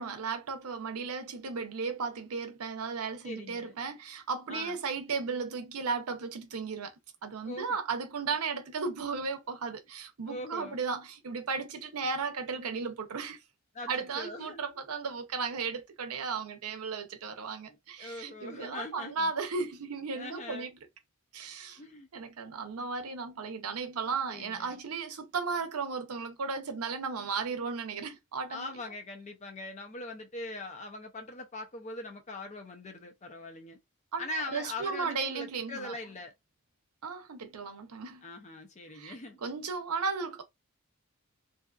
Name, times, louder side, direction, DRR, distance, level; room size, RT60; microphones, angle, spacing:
voice 1, 0.0-6.9 7.2-13.4 13.9-20.7 21.3-28.7 34.1-34.2 34.5-36.0 37.0-38.3 38.9-39.1 39.4-40.4, right 5 dB, 85° right, 0.6 m, -35 dB
voice 2, 3.2-3.8 4.5-4.8 7.4-7.8 10.3-10.8 13.7-14.6 17.7-19.3 20.1-20.7 21.8-22.1 24.3-24.8 28.5-33.8 34.2-36.3 38.2-39.4, left 2 dB, 30° left, 0.5 m, -41 dB
2.7 x 2.3 x 2.3 m
head